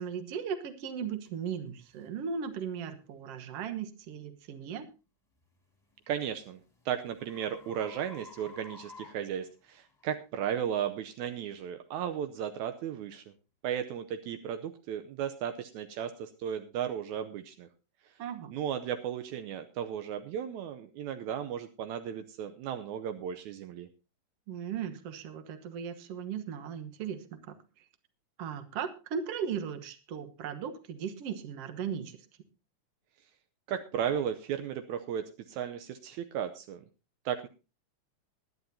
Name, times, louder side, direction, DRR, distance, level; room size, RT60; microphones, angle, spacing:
voice 1, 0.0-4.9 18.2-18.5 24.5-27.5 28.4-32.2, right 7 dB, 60° right, 9 dB, 2.1 m, -37 dB
sound 1, 1.3-1.4 1.9-2.1 2.7-2.9 5.6-10.1, left 4 dB, 10° left, 1.9 m, -53 dB
voice 2, 6.1-6.6 6.9-13.2 13.6-17.7 18.5-23.9 33.7-36.8 37.3-37.5, right 9 dB, 80° right, 8 dB, 2.1 m, -35 dB
21.0 x 11.0 x 2.7 m, 0.30 s
omnidirectional pair, 3.4 m